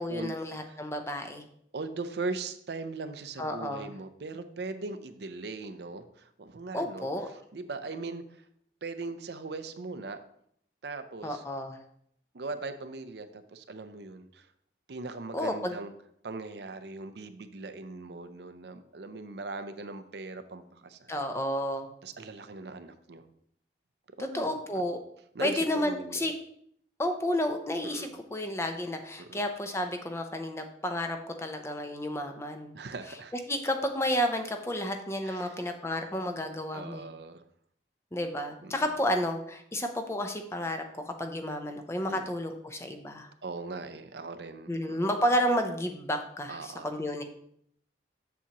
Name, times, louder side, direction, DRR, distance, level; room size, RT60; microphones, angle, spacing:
voice 1, 0.0-1.4 3.4-3.9 6.7-7.3 11.2-11.8 15.3-15.8 21.1-21.9 24.2-25.0 25.4-26.3 27.0-32.7 33.5-37.0 38.1-43.3 44.7-47.2, equal, 15° left, 6 dB, 0.5 m, -31 dB
voice 2, 1.7-7.1 7.5-8.4 8.8-10.2 10.8-11.4 12.3-14.5 14.9-15.9 16.2-21.1 22.0-23.3 24.2-24.5 25.3-26.3 27.8-28.1 29.2-29.4 32.7-33.3 35.2-35.6 36.7-37.4 38.6-38.7 42.1-42.3 43.4-45.0 46.5-46.9, right 3 dB, 65° right, 10 dB, 0.5 m, -39 dB
7.2 x 7.1 x 2.9 m, 0.68 s
head